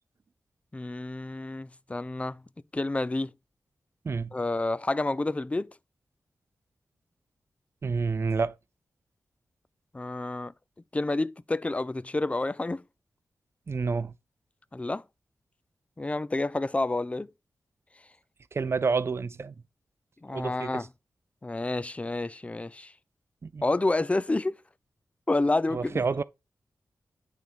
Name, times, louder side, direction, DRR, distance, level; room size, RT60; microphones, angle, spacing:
voice 1, 0.7-2.4 2.7-3.3 4.3-5.7 9.9-10.5 10.9-12.8 14.7-15.0 16.0-17.3 20.2-20.9 21.4-22.9 23.6-24.6 25.3-26.2, left 2 dB, 20° left, 0.5 m, -29 dB
voice 2, 4.0-4.4 7.8-8.5 13.7-14.1 18.5-19.5 20.3-20.9 23.4-23.6 25.7-26.2, right 4 dB, 50° right, 0.6 m, -29 dB
9.0 x 3.6 x 5.5 m
cardioid pair, 60°, 6 cm